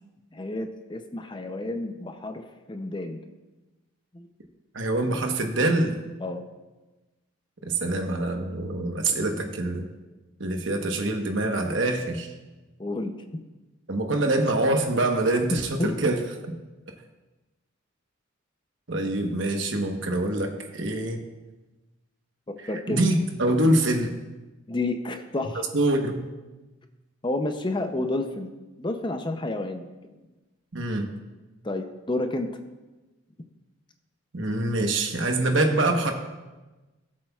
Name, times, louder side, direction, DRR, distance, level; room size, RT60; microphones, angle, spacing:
voice 1, 0.3-3.2 4.1-4.3 6.2-6.4 12.8-13.1 15.5-15.9 22.7-23.0 24.7-25.7 27.2-28.5 28.8-29.9 31.6-32.5, left 2 dB, 25° left, 6 dB, 0.5 m, -30 dB
voice 2, 4.7-5.9 7.6-9.8 10.4-12.3 13.9-16.5 18.9-21.2 22.9-24.1 25.7-26.3 30.7-31.1 34.3-36.1, right 2 dB, 65° right, 4 dB, 1.1 m, -25 dB
17.5 x 7.5 x 2.4 m, 1.1 s
head